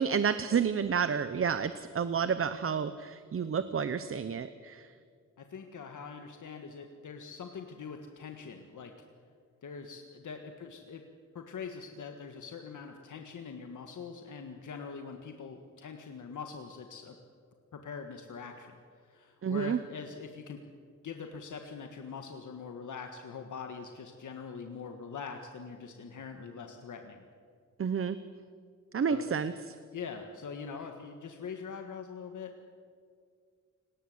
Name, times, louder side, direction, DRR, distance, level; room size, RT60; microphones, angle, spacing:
voice 1, 0.0-4.9 19.4-19.8 27.8-28.2 28.9-29.7, right 6 dB, 45° right, 12 dB, 0.8 m, -30 dB
voice 2, 5.4-8.9 9.6-11.0 11.3-17.1 17.7-18.8 19.1-20.6 21.0-27.2 29.1-29.3 29.9-32.5, left 5 dB, 80° left, 4 dB, 1.7 m, -43 dB
29.5 x 19.0 x 8.0 m, 2.1 s
wide cardioid pair, 175°, 30 cm